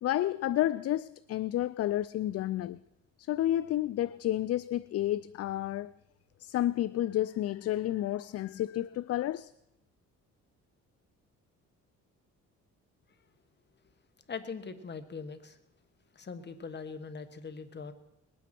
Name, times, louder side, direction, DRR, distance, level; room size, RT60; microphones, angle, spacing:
voice 1, 0.0-2.8 3.2-5.9 6.4-9.5, left 13 dB, 55° left, 0.4 m, -30 dB
voice 2, 14.3-15.6 16.1-17.9, left 5 dB, 35° left, 1.4 m, -41 dB
20.0 x 9.3 x 6.0 m
cardioid pair, 90°, 30 cm